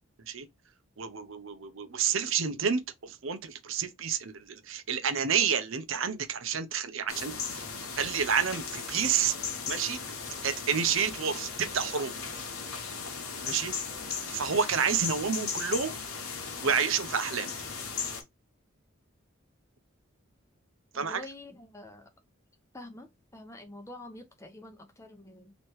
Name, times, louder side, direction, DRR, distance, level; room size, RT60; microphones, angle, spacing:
voice 1, 1.0-7.7 8.0-9.3 9.7-12.1 13.4-13.7 14.3-15.9 16.6-17.5 20.9-21.3, right 6 dB, 70° right, 0.7 m, -29 dB
sound 1, 7.1-18.2, left 5 dB, 90° left, 1.2 m, -37 dB
voice 2, 20.9-22.1 22.7-25.5, left 1 dB, 15° left, 0.7 m, -47 dB
3.1 x 3.0 x 4.5 m
head